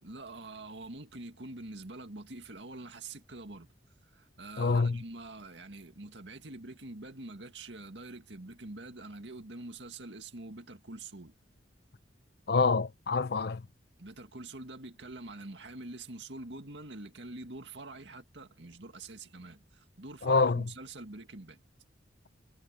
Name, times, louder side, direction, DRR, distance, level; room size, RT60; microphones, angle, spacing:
voice 1, 0.0-3.7 4.0-11.3 14.0-21.6, right 2 dB, 70° right, 2.1 m, -45 dB
voice 2, 4.6-5.0 12.5-13.7 20.2-20.7, left 4 dB, 55° left, 0.6 m, -26 dB
head